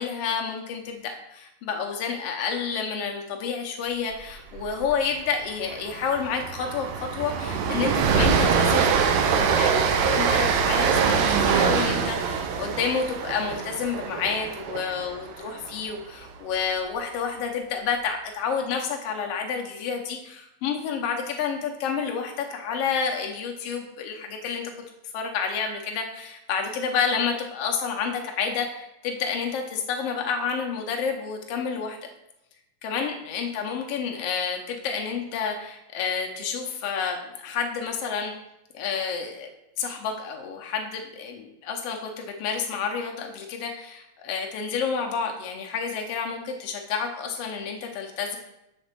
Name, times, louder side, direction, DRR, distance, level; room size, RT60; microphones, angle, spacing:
voice 1, 0.0-24.7 25.1-32.0 32.8-38.3 38.7-39.5 39.8-48.4, left 6 dB, 80° left, 2 dB, 1.3 m, -29 dB
Train, 4.6-4.9 5.1-5.3 5.7-15.8, right 6 dB, 75° right, 1.9 m, -24 dB
7.9 x 4.4 x 6.6 m, 0.89 s
omnidirectional pair, 3.9 m